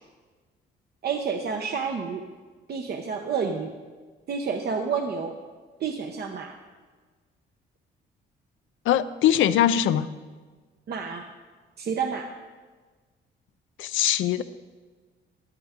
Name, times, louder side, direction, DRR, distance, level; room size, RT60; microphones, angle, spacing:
voice 1, 1.0-2.2 2.7-3.7 4.3-5.4 5.8-6.6 10.9-11.2 11.8-12.3, right 5 dB, 55° right, 4 dB, 0.8 m, -29 dB
voice 2, 8.9-10.1 13.8-14.4, left 11 dB, 80° left, 12 dB, 0.5 m, -21 dB
13.5 x 10.5 x 3.6 m, 1.4 s
cardioid pair, 90°, 20 cm